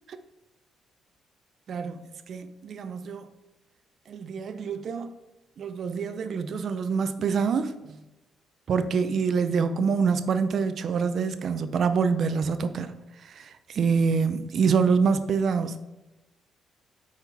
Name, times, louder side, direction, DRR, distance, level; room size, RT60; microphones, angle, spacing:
voice 1, 1.7-2.0 2.3-3.2 4.1-5.1 5.6-8.0 8.7-12.9 13.2-15.8, right 5 dB, 60° right, 0.5 m, -26 dB
5.8 x 4.3 x 4.5 m
cardioid pair, 90°, 0 cm